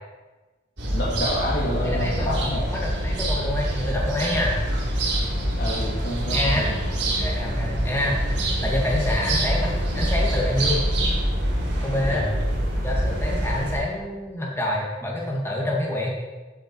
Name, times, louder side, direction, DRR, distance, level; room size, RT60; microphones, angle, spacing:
sound 1, 0.8-13.7, right 1 dB, 75° right, 4.3 m, -25 dB
voice 1, 0.9-2.7 5.6-6.8 12.1-12.3, equal, 60° left, -6 dB, 2.4 m, -28 dB
voice 2, 1.8-2.4 2.7-4.6 6.3-6.6 7.2-8.2 8.6-10.9 11.8-12.3 12.8-16.1, left 1 dB, 15° left, -3 dB, 2.2 m, -27 dB
15.0 x 7.3 x 4.7 m, 1.2 s
head